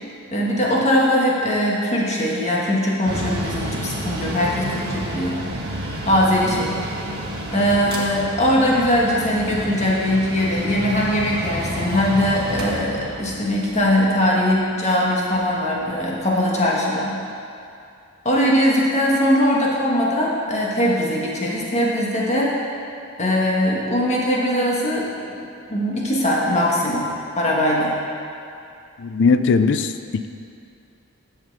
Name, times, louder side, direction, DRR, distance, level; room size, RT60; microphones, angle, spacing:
voice 1, 0.3-5.3 6.1-6.8 7.5-17.2 18.2-22.5 23.2-25.4 25.7-27.1 27.3-27.9, equal, 30° left, -4 dB, 1.6 m, -20 dB
Mechanical fan, 3.0-16.4, right 1 dB, 45° right, 1.5 m, -31 dB
voice 2, 29.0-29.9, left 4 dB, 55° left, 10 dB, 0.4 m, -18 dB
11.0 x 6.5 x 4.8 m, 2.5 s
head